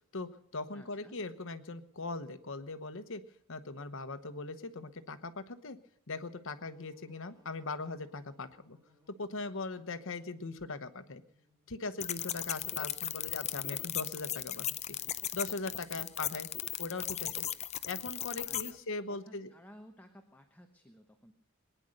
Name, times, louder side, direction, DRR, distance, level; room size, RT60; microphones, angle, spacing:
voice 1, 0.1-3.2 3.5-5.8 6.1-8.8 9.2-11.2 11.7-14.7 15.3-16.5 16.8-17.4 17.9-19.5, left 3 dB, 65° left, 11 dB, 1.1 m, -40 dB
voice 2, 0.7-1.2 18.4-18.8 19.1-21.3, equal, 10° left, 5 dB, 1.0 m, -56 dB
sound 1, 6.7-12.2, left 2 dB, 15° right, 2.7 m, -69 dB
sound 2, 12.0-18.7, left 11 dB, 30° left, 0.5 m, -37 dB
21.5 x 10.0 x 6.5 m, 0.71 s
head